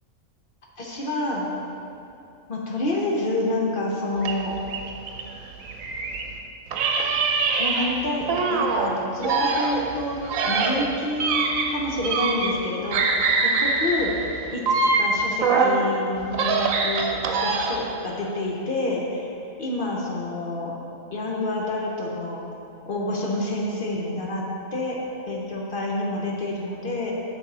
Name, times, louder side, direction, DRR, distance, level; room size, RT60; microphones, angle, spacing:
voice 1, 0.8-1.5 2.5-4.5 7.5-13.2 13.6-14.1 14.5-19.3 19.6-20.7 21.1-22.4 22.9-24.4 24.7-25.0 25.3-27.1, left 2 dB, 45° left, -3 dB, 0.9 m, -28 dB
sound 1, 4.2-6.3 6.7-8.9 9.2-12.7 12.9-15.8 16.2-17.9, right 4 dB, 80° right, 1.1 m, -24 dB
6.3 x 6.1 x 4.1 m, 2.8 s
omnidirectional pair, 1.4 m